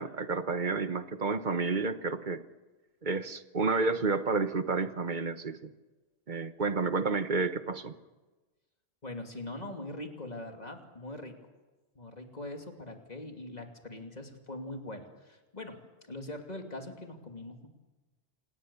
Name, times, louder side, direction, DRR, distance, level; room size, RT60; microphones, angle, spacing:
voice 1, 0.0-2.4 3.0-5.7 6.3-8.0, right 4 dB, 45° right, 11 dB, 1.2 m, -30 dB
voice 2, 9.0-11.3 11.9-15.8 16.1-17.7, left 1 dB, 40° left, 3 dB, 2.8 m, -42 dB
27.0 x 19.5 x 7.0 m, 1.2 s
omnidirectional pair, 1.1 m